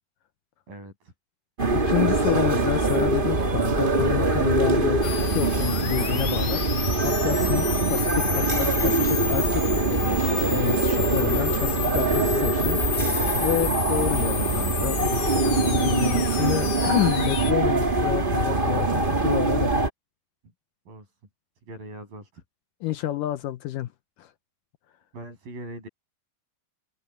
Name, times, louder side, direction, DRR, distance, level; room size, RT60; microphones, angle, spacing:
voice 1, 0.7-1.1 20.9-21.1 21.7-22.4 25.1-25.9, right 1 dB, 60° right, 9.4 m, -41 dB
sound 1, 1.6-19.9, right 3 dB, 90° right, 0.4 m, -23 dB
voice 2, 1.7-5.0 5.3-6.6 7.0-12.8 13.4-15.0 15.4-19.7 22.8-23.9 24.2-24.3, left 14 dB, 75° left, 2.0 m, -29 dB
sound 2, 5.0-17.5, left 9 dB, 60° left, 1.9 m, -31 dB
open air
omnidirectional pair, 4.5 m